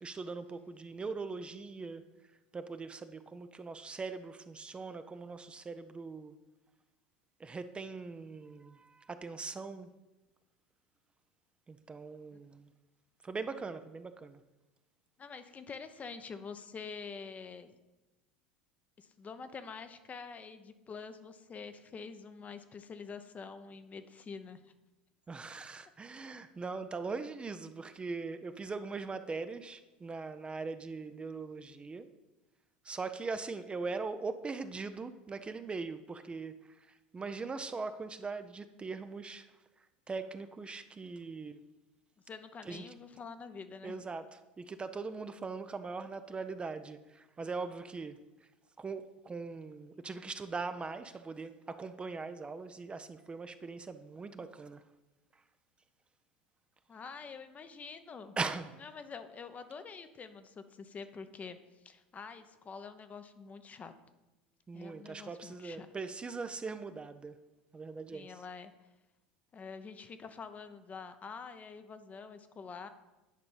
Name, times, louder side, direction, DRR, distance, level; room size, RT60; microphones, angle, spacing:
voice 1, 0.0-2.1 2.5-6.3 7.4-9.9 11.7-12.7 13.2-14.4 25.3-32.1 32.8-39.5 39.8-41.6 42.7-42.8 43.8-44.2 44.6-48.2 48.8-54.8 58.4-58.7 64.7-67.4 67.7-68.3, right 4 dB, 20° right, 9 dB, 0.5 m, -41 dB
voice 2, 15.2-17.7 19.0-24.7 42.3-43.9 56.9-58.3 58.8-63.9 64.7-65.9 68.1-68.9 69.5-72.9, left 5 dB, 30° left, 10 dB, 0.7 m, -46 dB
9.5 x 5.3 x 5.6 m, 1.1 s
hypercardioid pair, 80°, 5 cm